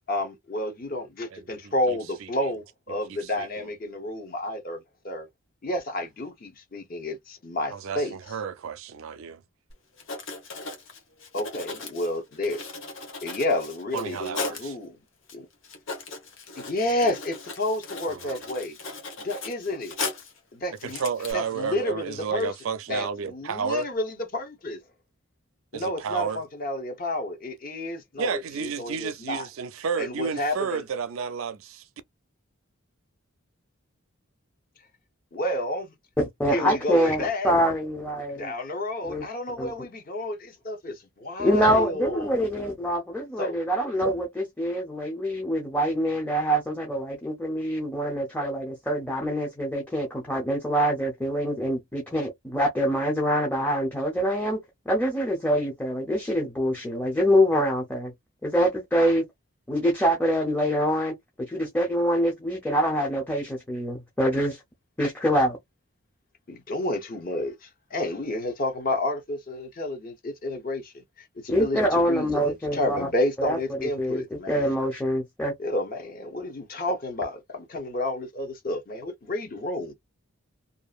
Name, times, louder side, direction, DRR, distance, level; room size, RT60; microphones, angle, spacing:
voice 1, 0.1-5.3 5.6-8.4 11.3-12.6 13.2-14.9 15.3-15.5 16.6-18.8 19.2-20.0 20.5-21.0 21.3-22.5 22.9-24.8 25.7-29.5 30.0-30.8 35.3-35.9 36.5-37.5 38.3-42.3 43.4-43.6 66.5-74.7 75.6-79.9, left 1 dB, 40° left, 0.8 m, -30 dB
voice 2, 1.3-1.7 3.1-3.7 7.7-9.4 13.9-14.7 18.1-18.4 20.8-23.9 25.7-26.4 28.2-31.8, right 6 dB, 70° right, 0.4 m, -31 dB
Writing, 9.7-9.8 10.0-14.7 15.3-15.4 15.6-20.4 20.8-21.3, left 3 dB, 60° left, 1.0 m, -37 dB
voice 3, 36.2-38.5 39.0-39.3 39.6-39.7 41.4-58.1 58.4-59.3 59.7-64.6 65.0-65.6 71.5-73.1 73.4-75.5, equal, 10° left, 0.6 m, -25 dB
2.7 x 2.4 x 2.3 m
head